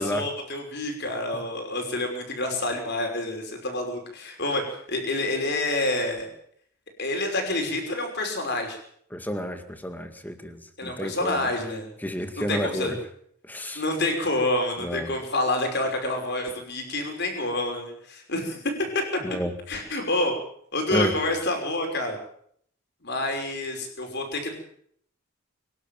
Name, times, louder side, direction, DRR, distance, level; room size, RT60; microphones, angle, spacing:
voice 1, 0.0-6.3 7.0-8.8 10.8-11.9 12.4-12.9 13.7-18.6 19.7-20.4 20.7-22.2 23.0-24.5, left 2 dB, 50° left, 4 dB, 5.7 m, -28 dB
voice 2, 9.1-11.5 12.0-13.0 13.5-13.8 14.8-15.1 19.2-19.5 20.9-21.2, equal, 10° left, 7 dB, 2.0 m, -30 dB
24.5 x 11.5 x 9.2 m, 0.65 s
head